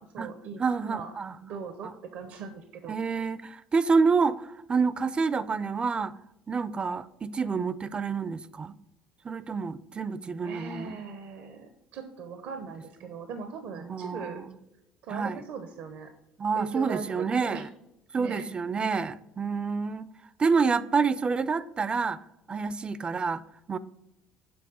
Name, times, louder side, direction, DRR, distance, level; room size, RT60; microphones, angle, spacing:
voice 1, 0.0-1.1 1.4-3.0 10.4-14.4 15.0-16.1 16.6-17.7 18.2-18.5, right 5 dB, 70° right, 0.6 m, -40 dB
voice 2, 0.6-1.3 2.9-6.1 6.5-8.7 9.2-11.0 13.8-14.5 15.1-15.4 16.4-17.6 18.1-20.1 20.4-22.2 22.5-23.4 23.7-23.8, right 5 dB, 30° right, 0.4 m, -28 dB
7.0 x 3.4 x 6.1 m
hypercardioid pair, 65°, 3 cm